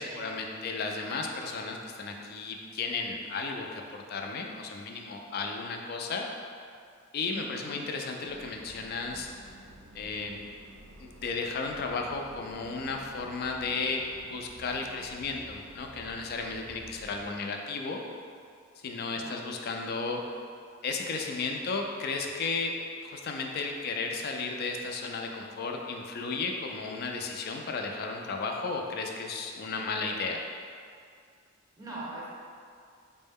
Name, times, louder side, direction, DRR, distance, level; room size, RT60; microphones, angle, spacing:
voice 1, 0.0-6.2 7.1-9.3 9.9-10.4 11.0-18.0 18.8-20.2 20.8-22.7 23.0-30.4, left 4 dB, 50° left, 2 dB, 0.3 m, -34 dB
voice 2, 7.3-7.8 19.1-19.5 31.8-32.3, right 2 dB, 15° right, -6 dB, 0.6 m, -42 dB
sound 1, 8.2-17.3, right 1 dB, 75° right, 0.4 m, -51 dB
4.3 x 2.1 x 3.5 m, 2.3 s
head